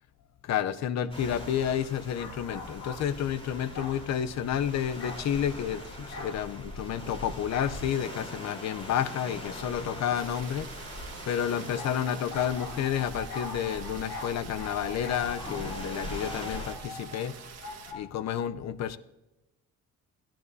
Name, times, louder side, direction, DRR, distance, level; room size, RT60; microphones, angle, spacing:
voice 1, 0.4-11.0 11.3-17.7 17.9-19.0, left 9 dB, 60° left, 15 dB, 0.7 m, -30 dB
sound 1, 1.1-16.7, equal, 20° left, 3.7 m, -42 dB
sound 2, 2.1-3.0 3.7-4.0 5.0-5.3 6.1-6.4 7.5-7.8 9.5-9.7 11.8-18.0, left 3 dB, 85° left, 2.2 m, -42 dB
sound 3, 10.1-17.9, right 8 dB, 60° right, 1.5 m, -47 dB
16.5 x 10.5 x 2.7 m, 1.0 s
cardioid pair, 90°, 30 cm